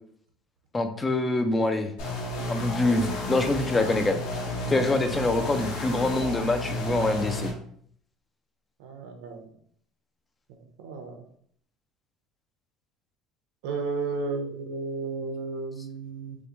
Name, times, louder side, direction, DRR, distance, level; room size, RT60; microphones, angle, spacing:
voice 1, 0.7-1.9 2.5-4.2 4.7-7.5, left 2 dB, 10° left, 7 dB, 0.3 m, -25 dB
sound 1, 2.0-7.5, left 1 dB, 70° left, 1.5 m, -32 dB
voice 2, 8.8-9.4 10.8-11.2 13.6-16.4, right 4 dB, 90° right, 4 dB, 0.8 m, -33 dB
6.3 x 2.1 x 3.0 m, 0.64 s
cardioid pair, 175°, 0 cm